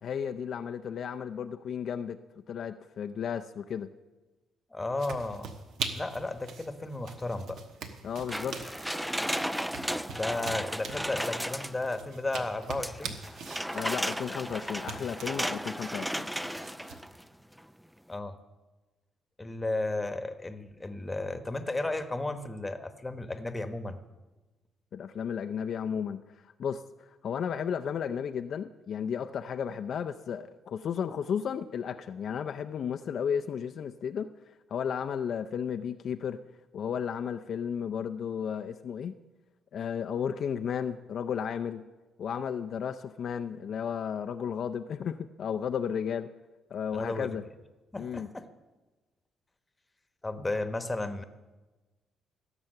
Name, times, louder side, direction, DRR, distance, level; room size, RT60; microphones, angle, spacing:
voice 1, 0.0-2.2 2.5-3.9 8.0-8.6 13.7-16.3 24.9-26.2 26.6-34.3 34.7-36.4 36.7-39.1 39.7-41.8 42.2-46.3 46.7-47.4 48.0-48.3, left 7 dB, 60° left, 8 dB, 0.5 m, -33 dB
voice 2, 4.7-5.5 5.9-7.6 10.1-13.2 18.1-18.4 19.4-24.0 46.9-47.3 47.9-48.5 50.2-51.2, left 2 dB, 15° left, 9 dB, 1.1 m, -34 dB
sound 1, 5.0-17.0, right 5 dB, 75° right, 1.2 m, -43 dB
sound 2, 8.3-12.0 12.8-17.2 17.6-17.7, equal, ahead, 0.4 m, -34 dB
16.0 x 7.0 x 6.6 m, 1.2 s
cardioid pair, 90°, 0 cm